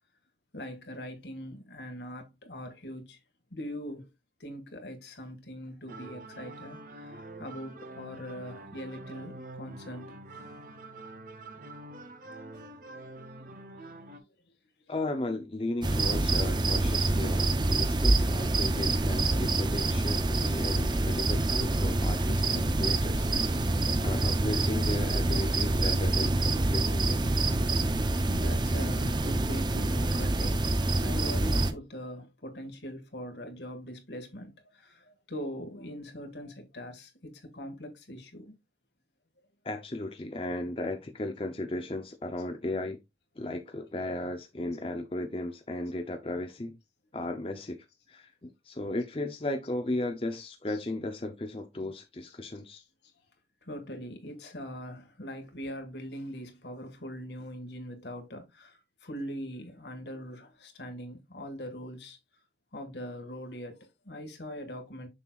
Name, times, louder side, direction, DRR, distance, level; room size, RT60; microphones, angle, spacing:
voice 1, 0.5-3.2 3.5-4.1 4.4-10.2 12.8-13.1 13.9-14.2 17.3-17.5 23.4-23.9 28.3-30.7 31.0-38.5 40.1-40.2 42.4-42.5 44.7-44.8 50.7-50.9 52.3-52.4 52.8-52.9 53.6-62.2 62.7-65.1, equal, 75° left, 1.8 m, -42 dB
sound 1, 5.9-14.2, right 2 dB, 50° right, 1.0 m, -46 dB
voice 2, 14.9-23.3 23.6-23.7 24.0-27.2 39.6-43.0 43.4-46.7 47.1-52.8, left 2 dB, 30° left, 0.6 m, -35 dB
sound 2, 15.8-31.7, right 2 dB, 25° right, 0.6 m, -26 dB
6.9 x 6.5 x 2.4 m
head